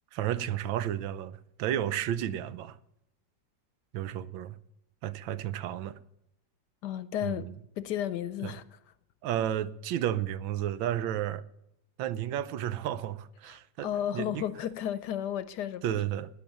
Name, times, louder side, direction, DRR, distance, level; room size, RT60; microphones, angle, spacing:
voice 1, 0.1-2.8 3.9-4.6 5.0-6.0 7.2-7.5 8.4-8.5 9.2-11.4 12.0-13.9 14.1-14.4 15.8-16.3, right 11 dB, 85° right, 1.5 m, -32 dB
voice 2, 6.8-7.5 7.8-8.8 13.5-15.8, left 10 dB, 70° left, 1.2 m, -33 dB
11.5 x 9.4 x 9.0 m
omnidirectional pair, 2.1 m